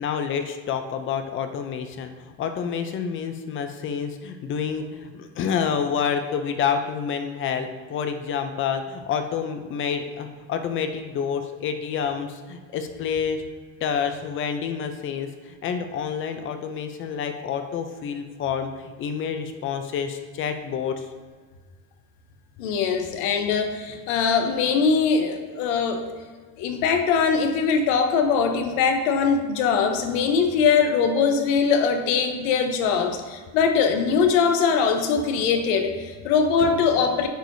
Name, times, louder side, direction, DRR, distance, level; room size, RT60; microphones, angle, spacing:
voice 1, 0.0-13.4 13.8-21.0 36.6-36.7, left 7 dB, 30° left, 8 dB, 0.5 m, -28 dB
voice 2, 22.6-26.1 26.6-37.3, left 5 dB, 75° left, 6 dB, 1.0 m, -22 dB
9.1 x 4.6 x 2.7 m, 1.5 s
cardioid pair, 145°, 39 cm